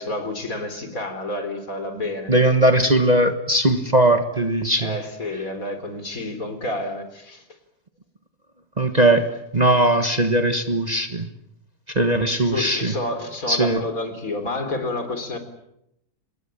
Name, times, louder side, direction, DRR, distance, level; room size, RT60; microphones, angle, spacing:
voice 1, 0.0-2.3 4.8-7.4 12.5-15.4, left 2 dB, 60° left, 8 dB, 4.0 m, -29 dB
voice 2, 2.3-4.9 8.8-9.3 9.5-11.3 11.9-12.9 13.5-13.8, right 1 dB, 25° right, 7 dB, 1.5 m, -19 dB
25.5 x 21.0 x 8.8 m, 0.79 s
omnidirectional pair, 1.7 m